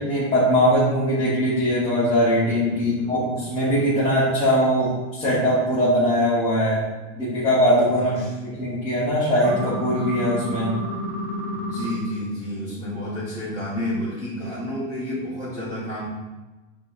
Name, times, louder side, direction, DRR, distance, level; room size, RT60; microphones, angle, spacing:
voice 1, 0.0-6.9 7.2-8.1 8.4-10.7, equal, 15° left, -11 dB, 1.0 m, -21 dB
voice 2, 2.4-3.4 7.9-8.3 11.5-16.1, left 1 dB, 15° right, -11 dB, 1.1 m, -31 dB
sound 1, 9.4-11.9, left 1 dB, 60° left, 1.4 m, -30 dB
5.9 x 2.9 x 2.5 m, 1.2 s
supercardioid pair, 150°, 40 cm